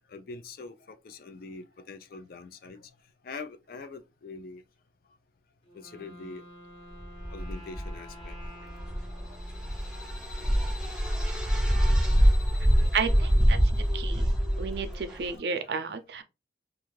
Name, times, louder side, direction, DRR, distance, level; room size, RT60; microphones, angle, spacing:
voice 1, 0.1-2.9 3.2-4.6 5.7-6.4 7.3-8.4 15.7-15.8, left 3 dB, 55° left, 0.4 m, -43 dB
Wind instrument woodwind instrument, 5.6-10.5, equal, 30° left, 0.9 m, -50 dB
sound 1, 7.0-15.3, equal, 5° right, 0.6 m, -25 dB
sound 2, 8.9-14.8, left 5 dB, 75° left, 0.8 m, -50 dB
voice 2, 12.9-14.3 14.6-16.2, right 5 dB, 65° right, 0.4 m, -32 dB
2.4 x 2.3 x 3.1 m
head